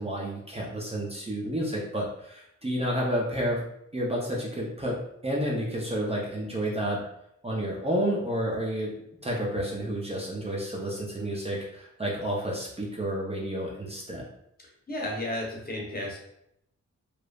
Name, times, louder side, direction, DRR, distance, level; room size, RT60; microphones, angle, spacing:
voice 1, 0.0-3.6 3.9-5.0 5.2-7.0 7.4-8.9 9.2-14.2, equal, 20° right, -3 dB, 0.6 m, -30 dB
voice 2, 14.6-16.2, left 1 dB, 30° left, -2 dB, 0.9 m, -33 dB
3.1 x 2.0 x 2.4 m, 0.77 s
cardioid pair, 60°, 29 cm